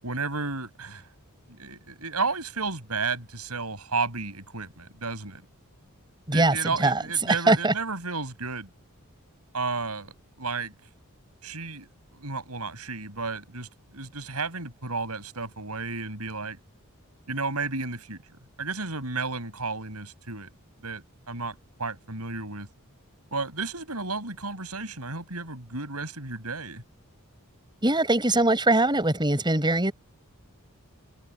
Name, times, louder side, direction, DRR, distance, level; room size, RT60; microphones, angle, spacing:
voice 1, 0.0-1.0 1.5-5.4 6.3-8.7 9.5-10.7 11.4-16.6 17.3-18.2 18.6-20.5 20.8-22.7 23.3-26.8, right 4 dB, 85° right, 6.3 m, -33 dB
voice 2, 6.3-7.7 27.8-29.9, right 2 dB, 20° right, 7.8 m, -22 dB
head